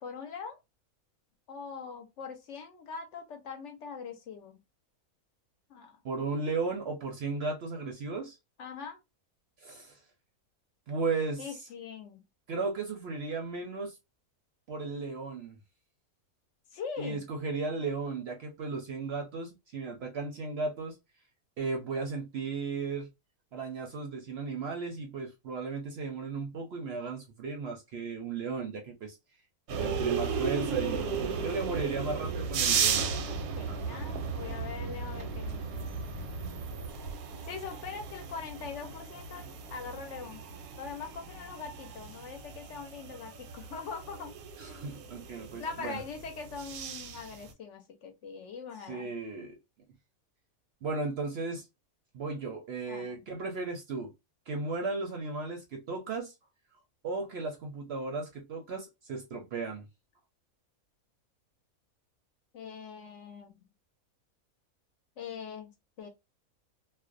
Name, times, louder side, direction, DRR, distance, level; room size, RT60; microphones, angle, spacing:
voice 1, 0.0-0.6 1.5-4.6 5.7-6.0 8.6-9.0 11.4-12.2 16.7-17.2 33.6-35.8 37.5-40.4 40.8-44.3 45.6-49.1 52.9-53.2 62.5-63.6 65.2-65.7 66.0-66.1, left 5 dB, 65° left, 0.8 m, -42 dB
voice 2, 6.0-8.4 9.6-10.0 10.9-11.6 12.5-14.0 14.7-15.6 17.0-21.0 21.6-23.1 23.5-29.2 29.7-31.1 31.4-33.1 33.7-34.0 44.6-46.0 48.9-49.6 50.8-51.7 52.1-54.1 54.5-56.3 57.0-59.8, right 4 dB, 60° right, 0.7 m, -35 dB
sound 1, 29.7-47.5, right 6 dB, 85° right, 1.0 m, -35 dB
2.4 x 2.1 x 2.4 m
omnidirectional pair, 1.5 m